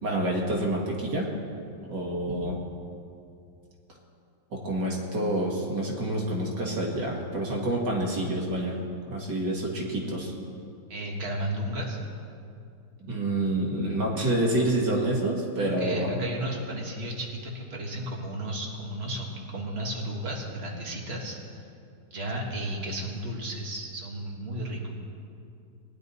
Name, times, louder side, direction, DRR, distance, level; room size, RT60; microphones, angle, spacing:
voice 1, 0.0-1.3 1.9-2.6 4.5-8.8 9.1-10.3 13.0-16.1, right 1 dB, 75° right, -2 dB, 2.5 m, -28 dB
voice 2, 10.9-12.0 15.7-21.4 22.1-24.9, right 1 dB, 35° right, -1 dB, 1.9 m, -33 dB
19.0 x 10.5 x 4.1 m, 2.5 s
omnidirectional pair, 1.9 m